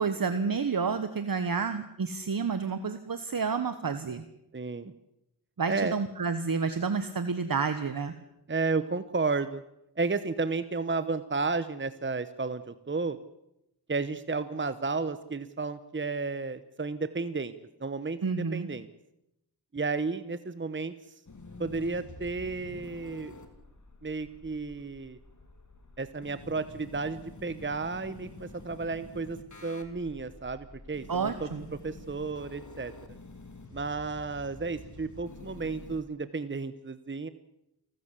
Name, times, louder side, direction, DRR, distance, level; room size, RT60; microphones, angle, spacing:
voice 1, 0.0-4.2 5.6-8.1 18.2-18.7 31.1-31.6, right 5 dB, 60° right, 10 dB, 1.3 m, -30 dB
voice 2, 4.5-4.9 5.7-6.0 8.5-9.6 10.0-13.2 13.9-17.5 17.8-18.9 19.7-20.9 21.6-23.3 24.0-25.2 26.0-31.5 31.8-32.9 33.7-37.3, right 4 dB, 30° right, 13 dB, 0.9 m, -32 dB
sound 1, 21.3-36.0, left 2 dB, 45° left, 3.0 m, -48 dB
28.5 x 13.5 x 8.2 m, 0.85 s
wide cardioid pair, 75°, 40 cm